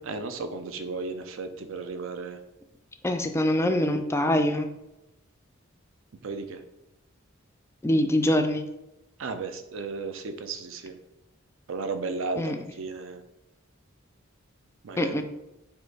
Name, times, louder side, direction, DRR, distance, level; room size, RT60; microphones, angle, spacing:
voice 1, 0.1-2.4 6.2-6.6 9.2-11.0 11.7-13.2 14.8-15.1, right 4 dB, 70° right, 8 dB, 0.5 m, -34 dB
voice 2, 3.0-4.7 7.8-8.6 12.4-12.6 15.0-15.2, left 1 dB, 15° left, 6 dB, 0.3 m, -24 dB
4.4 x 2.5 x 4.6 m, 0.91 s
head